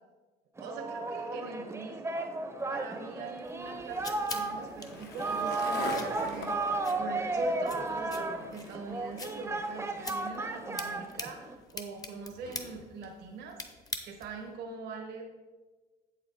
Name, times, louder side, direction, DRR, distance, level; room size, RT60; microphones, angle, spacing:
Singing, 0.6-11.6, right 3 dB, 15° right, 0.7 m, -34 dB
voice 1, 0.6-2.3 2.7-13.6 14.0-15.2, right 4 dB, 80° right, 1 dB, 1.3 m, -42 dB
Skateboard, 2.6-13.1, left 4 dB, 70° left, 1.3 m, -46 dB
sound 1, 3.5-14.5, left 3 dB, 20° left, 0.8 m, -45 dB
7.9 x 7.3 x 3.9 m, 1.3 s
cardioid pair, 110°, 17 cm